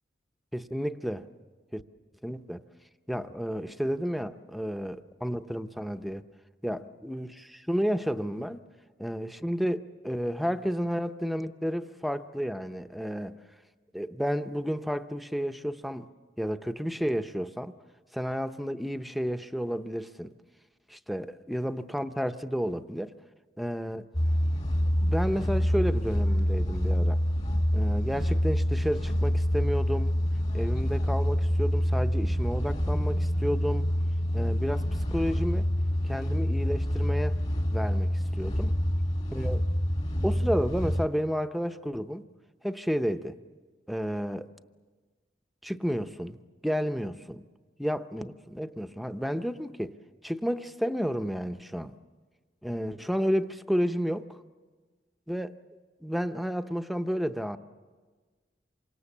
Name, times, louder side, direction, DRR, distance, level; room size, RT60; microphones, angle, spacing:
voice 1, 0.5-1.3 1.7-1.8 2.2-2.6 3.1-6.2 6.6-8.6 9.0-13.4 13.9-16.1 16.4-17.7 18.1-20.3 20.9-23.1 23.6-24.1 25.0-27.2 27.7-30.1 30.5-33.9 34.3-35.7 36.0-37.4 37.7-38.8 39.3-39.6 40.2-42.2 42.6-43.4 43.9-44.5 45.6-46.4 46.6-47.5 47.8-49.9 50.2-51.9 52.6-54.4 55.3-55.6 56.0-57.6, equal, ahead, 0.7 m, -31 dB
sound 1, 24.1-41.1, equal, 40° left, 2.0 m, -27 dB
27.5 x 25.0 x 7.3 m
head